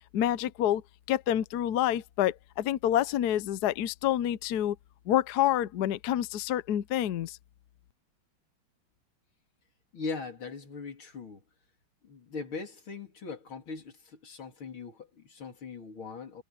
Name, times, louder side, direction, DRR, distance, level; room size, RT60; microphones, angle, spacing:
voice 1, 0.1-0.8 1.1-4.8 5.1-7.4, left 12 dB, 65° left, 1.1 m, -27 dB
voice 2, 9.9-11.4 12.0-16.4, left 4 dB, 85° left, 4.0 m, -40 dB
omnidirectional pair, 2.2 m